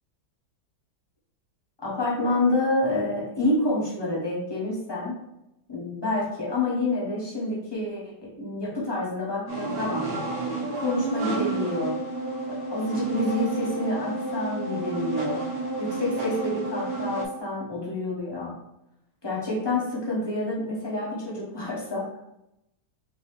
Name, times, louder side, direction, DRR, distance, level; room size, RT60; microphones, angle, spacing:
voice 1, 1.8-5.1 5.7-10.1 10.8-12.0 12.5-15.5 15.8-18.6 19.2-22.2, left 2 dB, 25° left, -5 dB, 0.6 m, -28 dB
sound 1, 9.5-17.2, right 2 dB, 25° right, 0.9 m, -30 dB
5.2 x 2.7 x 3.1 m, 0.87 s
omnidirectional pair, 2.1 m